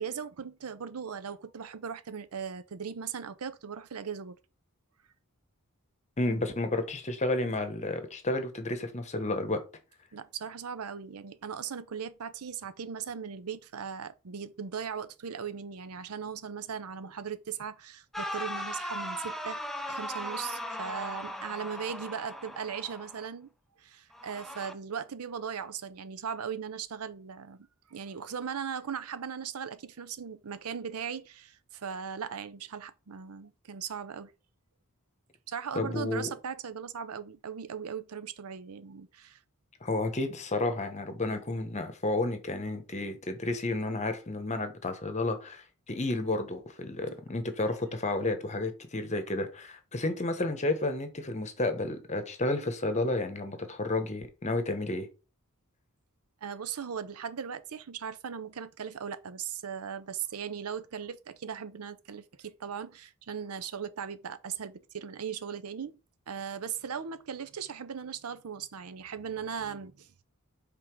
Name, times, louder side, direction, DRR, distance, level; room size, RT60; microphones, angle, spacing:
voice 1, 0.0-4.4 10.1-19.6 19.9-23.5 23.8-34.3 35.5-39.4 56.4-66.0 66.3-70.2, right 7 dB, 85° right, 0.6 m, -38 dB
voice 2, 6.2-9.6 35.7-36.3 39.8-55.1, left 2 dB, 30° left, 1.0 m, -31 dB
sound 1, 18.1-23.3 24.1-24.7, equal, ahead, 0.5 m, -38 dB
5.7 x 3.7 x 4.6 m
head